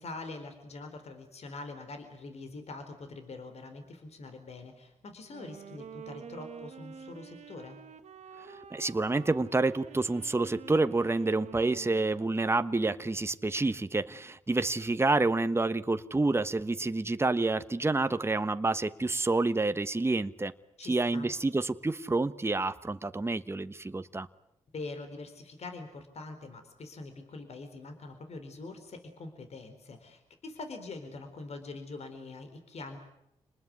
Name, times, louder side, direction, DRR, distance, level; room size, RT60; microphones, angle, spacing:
voice 1, 0.0-7.8 20.8-21.3 24.7-33.0, left 3 dB, 60° left, 7 dB, 4.1 m, -44 dB
Wind instrument woodwind instrument, 5.2-12.9, right 6 dB, 65° right, 1.8 m, -48 dB
voice 2, 8.7-20.5 20.8-24.3, right 3 dB, 20° right, 11 dB, 1.1 m, -28 dB
28.0 x 20.0 x 9.6 m, 0.82 s
supercardioid pair, 50°, 12 cm